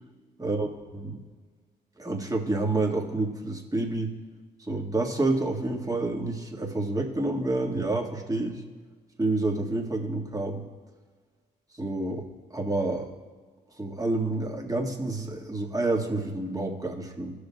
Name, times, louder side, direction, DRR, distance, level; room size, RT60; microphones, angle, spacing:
voice 1, 2.0-4.1 4.7-8.6 9.2-10.7 11.8-12.2 12.5-13.1 13.8-17.3, right 2 dB, 15° right, 0 dB, 1.8 m, -28 dB
16.0 x 6.6 x 2.4 m, 1.5 s
supercardioid pair, 55°, 21 cm